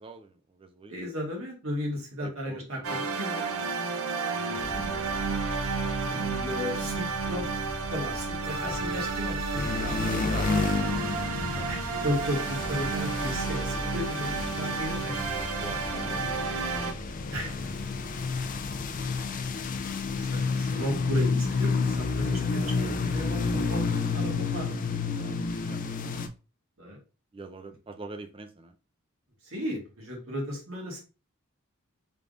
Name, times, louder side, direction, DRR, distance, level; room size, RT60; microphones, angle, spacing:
voice 1, 0.0-1.0 2.2-3.9 9.8-10.8 13.7-13.9 15.4-16.7 17.2-17.7 25.1-26.0 27.3-28.7, right 3 dB, 25° right, 8 dB, 0.4 m, -45 dB
voice 2, 0.9-3.4 4.3-4.9 6.1-7.5 7.9-9.9 11.6-15.2 17.3-17.6 20.1-24.7 26.8-27.0 29.4-31.0, equal, 65° right, -1 dB, 1.6 m, -35 dB
sound 1, 2.8-16.9, right 5 dB, 80° right, 0.6 m, -32 dB
sound 2, 4.5-23.6, equal, 5° right, 1.0 m, -41 dB
sound 3, 9.6-26.3, left 4 dB, 40° left, 0.4 m, -30 dB
3.5 x 3.4 x 2.5 m, 0.32 s
head